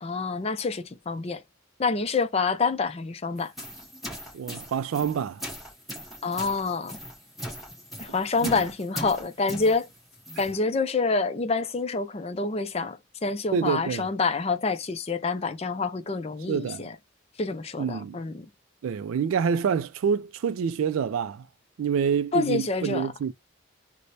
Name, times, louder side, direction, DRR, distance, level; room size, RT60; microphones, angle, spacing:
voice 1, 0.0-1.4 1.8-3.5 6.2-7.0 8.0-9.9 10.4-17.0 17.4-18.5 22.3-23.1, left 4 dB, 30° left, 0.4 m, -27 dB
sound 1, 3.4-10.6, equal, ahead, 1.7 m, -39 dB
voice 2, 4.3-5.4 8.4-8.6 13.5-14.1 16.5-16.8 17.8-18.2 18.8-21.5 21.8-23.3, right 7 dB, 75° right, 0.3 m, -27 dB
4.0 x 2.1 x 3.2 m
head